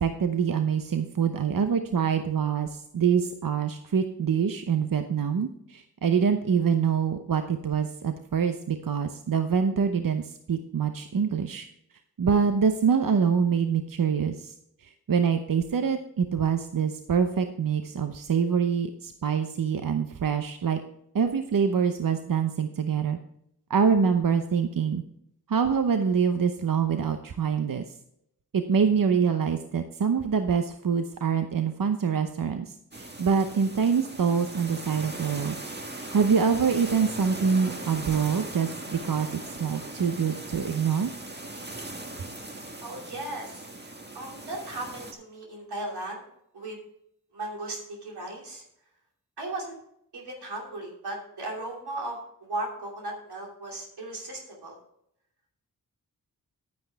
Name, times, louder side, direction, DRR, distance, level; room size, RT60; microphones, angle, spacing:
voice 1, 0.0-11.7 12.2-14.5 15.1-20.8 21.1-23.2 23.7-25.0 25.5-27.8 28.5-35.6 36.0-39.3 39.6-41.1, right 6 dB, 60° right, 7 dB, 0.8 m, -25 dB
sound 1, 32.9-45.1, right 2 dB, 25° right, 1.6 m, -39 dB
voice 2, 42.8-46.2 46.5-46.8 47.3-48.6 49.4-49.8 50.1-54.7, right 2 dB, 90° right, -1 dB, 2.9 m, -36 dB
10.5 x 9.1 x 3.5 m, 0.74 s
cardioid pair, 40°, 38 cm